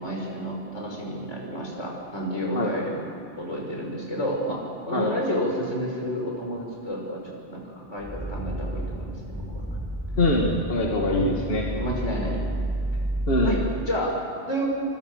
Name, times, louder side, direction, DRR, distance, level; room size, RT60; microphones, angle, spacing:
voice 1, 0.0-3.0 3.4-9.6 11.1-11.3 11.7-12.5 13.4-14.6, equal, 85° left, -1 dB, 6.2 m, -30 dB
sound 1, 8.0-13.8, right 1 dB, 10° left, 2.2 m, -30 dB
voice 2, 10.2-11.6 13.3-13.5, left 1 dB, 55° left, -2 dB, 2.6 m, -23 dB
25.0 x 24.5 x 6.9 m, 2.7 s
omnidirectional pair, 1.2 m